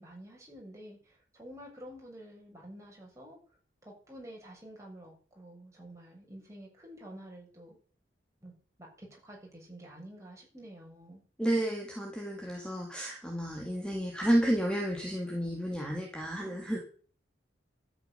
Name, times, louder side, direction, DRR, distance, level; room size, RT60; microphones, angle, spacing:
voice 1, 0.0-3.4 3.8-7.8 8.4-8.5 8.8-11.2 16.4-16.8, right 1 dB, 15° right, -2 dB, 7.0 m, -49 dB
voice 2, 11.4-16.8, right 1 dB, 5° left, 1 dB, 2.3 m, -31 dB
13.0 x 8.9 x 6.9 m, 0.43 s
head